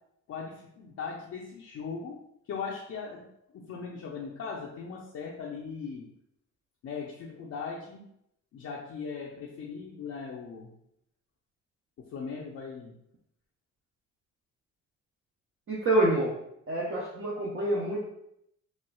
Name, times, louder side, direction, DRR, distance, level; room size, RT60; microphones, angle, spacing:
voice 1, 0.3-2.2 2.5-3.2 3.5-6.1 6.8-8.1 8.5-10.7 12.0-12.9, left 5 dB, 55° left, -3 dB, 0.6 m, -39 dB
voice 2, 15.7-16.3 16.7-18.0, right 1 dB, 45° right, -5 dB, 0.7 m, -27 dB
4.3 x 2.3 x 2.3 m, 0.76 s
cardioid pair, 90°, 30 cm